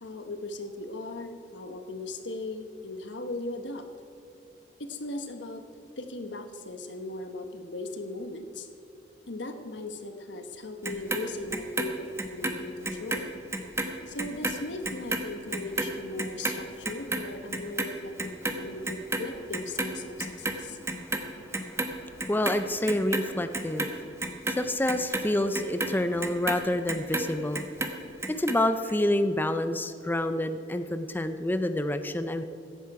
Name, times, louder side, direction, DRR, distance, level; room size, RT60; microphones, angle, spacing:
voice 1, 0.0-3.9 4.8-5.6 6.0-8.7 9.3-13.3 14.1-20.8, left 2 dB, 85° left, 7 dB, 1.1 m, -38 dB
Clock, 10.8-13.2 13.5-19.9 20.2-21.3 21.5-22.5 22.9-27.3 27.6-28.6 28.9-29.0, right 2 dB, 15° right, 1.0 m, -31 dB
voice 2, 22.3-24.1 24.5-27.7 28.3-32.4, left 1 dB, 10° left, 9 dB, 0.4 m, -28 dB
14.5 x 10.5 x 4.8 m, 2.6 s
head